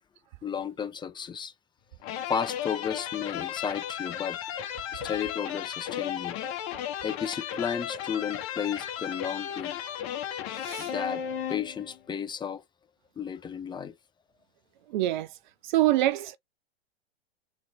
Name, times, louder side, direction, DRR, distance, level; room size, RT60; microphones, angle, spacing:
voice 1, 0.4-1.5 2.3-4.4 4.9-6.4 7.0-9.8 10.8-11.2 11.5-12.6 13.2-13.9, left 7 dB, 15° left, 0.8 m, -33 dB
sound 1, 2.0-12.0, left 10 dB, 40° left, 1.4 m, -35 dB
voice 2, 10.5-10.9 14.9-15.3 15.6-16.4, right 15 dB, 50° right, 0.5 m, -25 dB
3.9 x 3.3 x 3.7 m
hypercardioid pair, 105°, 32 cm